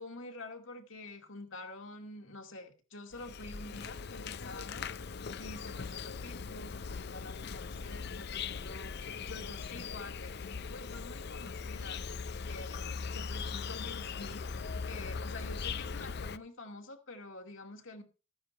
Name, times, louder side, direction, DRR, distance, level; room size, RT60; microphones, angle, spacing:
voice 1, 0.0-5.1 5.4-9.0 9.3-14.5 14.9-18.0, left 2 dB, 70° left, 2.4 m, -48 dB
Insect, 3.1-16.4, left 5 dB, 55° left, 0.6 m, -40 dB
14.0 x 9.5 x 4.3 m
head